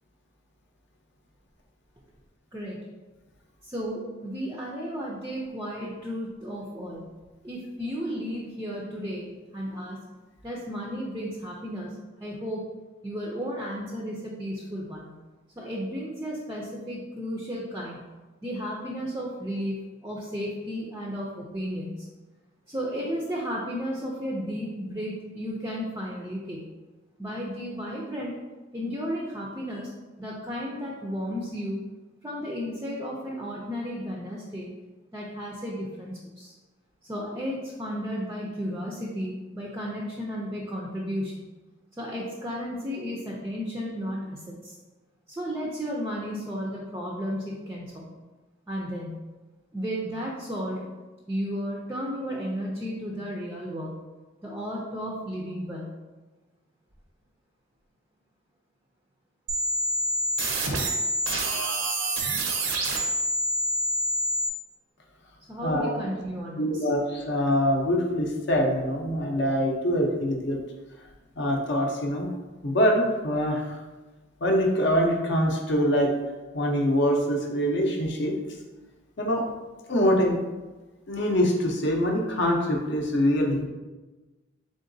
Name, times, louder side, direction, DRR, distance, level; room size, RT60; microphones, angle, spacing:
voice 1, 2.5-2.9 3.6-7.1 7.4-10.0 10.4-12.7 13.0-15.1 15.6-18.1 18.4-22.0 22.7-26.7 27.2-28.4 28.7-29.9 30.2-31.8 32.2-34.7 35.1-36.5 37.0-41.5 42.0-44.7 45.3-48.1 48.7-49.2 49.7-50.9 51.3-53.9 54.4-55.9 65.5-66.9, equal, 15° right, -3 dB, 0.4 m, -33 dB
sound 1, 59.5-64.5, right 1 dB, 75° right, 0.6 m, -27 dB
voice 2, 65.6-66.0 66.6-70.6 71.4-72.3 72.6-73.8 74.4-76.1 76.5-78.3 79.2-79.4 79.9-80.4 81.1-83.7, equal, 55° left, 1 dB, 0.6 m, -24 dB
3.7 x 3.7 x 2.6 m, 1.2 s
head